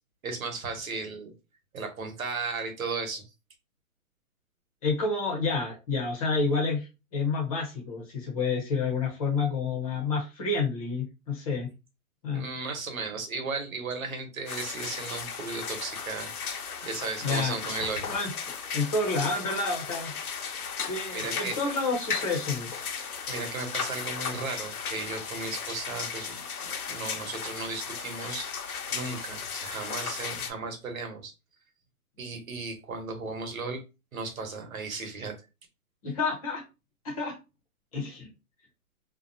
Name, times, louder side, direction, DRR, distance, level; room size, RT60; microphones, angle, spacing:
voice 1, 0.2-1.3 1.7-3.2 12.3-16.3 16.8-18.1 21.1-21.6 23.3-26.4 26.9-28.5 28.9-31.3 32.2-33.8 34.1-35.4, right 4 dB, 70° right, 4 dB, 1.1 m, -35 dB
voice 2, 4.8-11.7 12.2-12.5 17.2-17.6 18.1-18.3 18.7-20.1 20.8-22.7 36.0-36.6 37.0-37.4 37.9-38.3, left 4 dB, 25° left, 0 dB, 0.7 m, -29 dB
sound 1, 14.5-30.5, left 6 dB, 90° left, 0.8 m, -36 dB
2.7 x 2.1 x 2.6 m, 0.27 s
hypercardioid pair, 150°, 43 cm